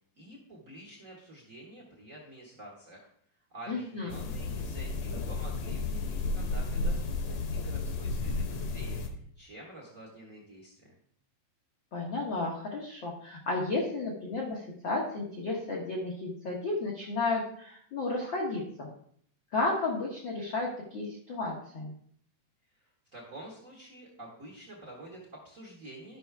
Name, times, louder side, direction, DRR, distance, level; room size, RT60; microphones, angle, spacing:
voice 1, 0.1-3.1 3.5-9.0 9.4-10.9 22.8-26.2, right 1 dB, 70° right, -3 dB, 0.7 m, -48 dB
voice 2, 3.7-4.1 11.9-18.9 19.5-21.9, left 3 dB, 85° left, -1 dB, 1.0 m, -33 dB
sound 1, 4.1-9.1, left 3 dB, 70° left, 1.8 m, -33 dB
12.5 x 5.7 x 3.4 m, 0.63 s
omnidirectional pair, 3.9 m